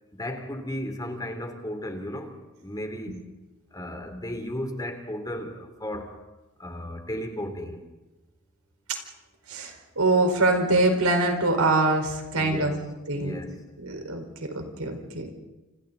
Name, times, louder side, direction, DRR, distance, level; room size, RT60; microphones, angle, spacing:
voice 1, 0.1-2.3 2.6-3.2 3.7-6.1 6.6-7.8 12.3-13.6, left 1 dB, 20° left, 5 dB, 3.0 m, -35 dB
voice 2, 9.5-12.7 13.1-13.4 13.8-15.3, right 2 dB, 90° right, 4 dB, 4.5 m, -24 dB
29.0 x 27.5 x 4.0 m, 1.1 s
head